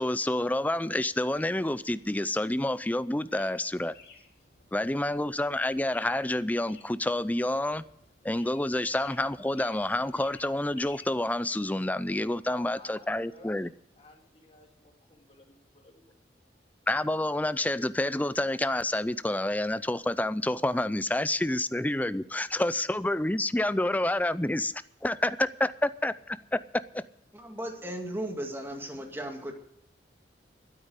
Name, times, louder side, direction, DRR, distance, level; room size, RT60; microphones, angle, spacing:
voice 1, 0.0-3.9 4.7-7.8 8.2-13.7 16.9-24.7 25.0-26.6 26.9-27.0, left 1 dB, 10° left, 0.4 m, -28 dB
sound 1, 3.2-11.3, left 4 dB, 60° left, 3.3 m, -56 dB
voice 2, 12.5-13.6 14.0-16.5, left 3 dB, 35° left, 3.0 m, -54 dB
voice 3, 27.3-29.5, right 1 dB, 15° right, 2.1 m, -36 dB
12.5 x 9.5 x 8.0 m
head